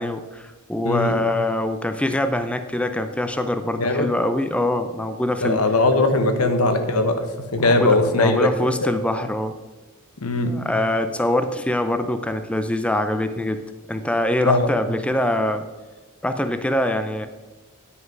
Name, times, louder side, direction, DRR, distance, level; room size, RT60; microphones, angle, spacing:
voice 1, 0.0-5.6 7.6-9.6 10.5-13.6 13.9-15.6 16.2-17.3, left 1 dB, 5° left, 8 dB, 0.4 m, -24 dB
voice 2, 3.8-4.1 5.4-8.5 8.8-8.9 10.2-10.5 14.4-14.7, left 2 dB, 90° left, 7 dB, 1.1 m, -20 dB
9.6 x 6.3 x 5.3 m, 1.2 s
head